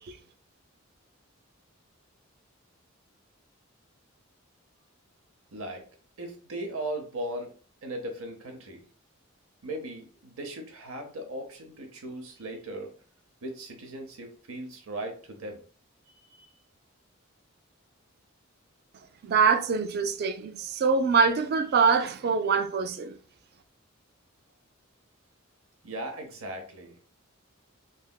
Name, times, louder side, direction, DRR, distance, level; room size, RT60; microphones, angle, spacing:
voice 1, 5.5-5.8 6.2-7.5 7.8-8.8 9.6-12.9 13.4-15.6 16.3-16.5 25.8-27.0, right 1 dB, 80° right, 0.8 m, -38 dB
voice 2, 19.2-23.2, right 5 dB, 50° right, 0.3 m, -24 dB
3.2 x 2.7 x 2.3 m
head